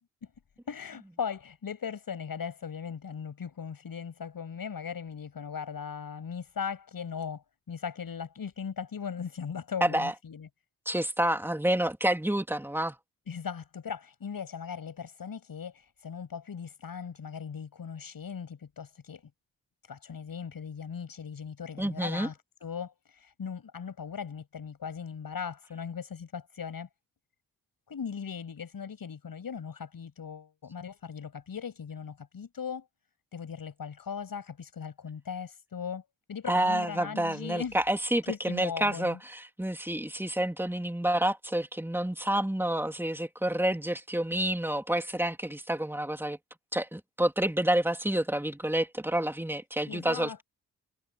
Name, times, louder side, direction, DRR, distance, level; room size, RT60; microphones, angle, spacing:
voice 1, 0.7-10.5 13.3-19.2 19.9-26.9 27.9-32.9 33.3-36.0 36.3-37.8 38.3-39.2 49.9-50.4, left 7 dB, 65° left, 7.7 m, -38 dB
voice 2, 9.8-10.1 10.8-13.0 21.8-22.3 36.5-46.4 46.7-50.4, right 1 dB, 5° right, 3.1 m, -29 dB
supercardioid pair, 50°, 37 cm